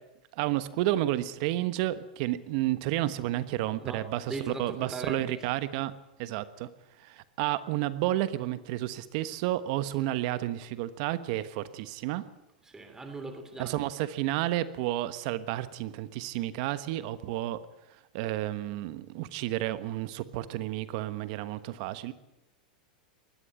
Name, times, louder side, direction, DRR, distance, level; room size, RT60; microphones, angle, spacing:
voice 1, 0.3-5.9 6.2-6.7 7.0-12.2 13.6-17.6 18.1-22.1, right 15 dB, 55° right, 13 dB, 1.3 m, -31 dB
voice 2, 4.3-5.4 12.6-13.9, right 3 dB, 10° right, 7 dB, 3.2 m, -39 dB
19.5 x 13.5 x 10.0 m, 0.93 s
hypercardioid pair, 115°, 5 cm